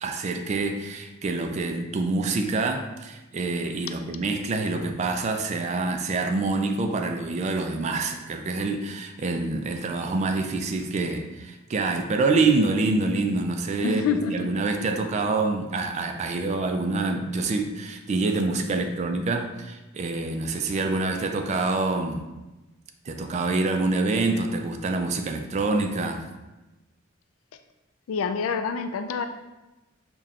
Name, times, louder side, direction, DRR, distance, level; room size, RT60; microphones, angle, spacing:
voice 1, 0.0-22.2 23.1-26.3, right 3 dB, 35° right, 5 dB, 0.3 m, -26 dB
voice 2, 13.8-14.5 28.1-29.3, left 5 dB, 85° left, 8 dB, 0.3 m, -27 dB
5.5 x 2.2 x 2.4 m, 1.1 s
head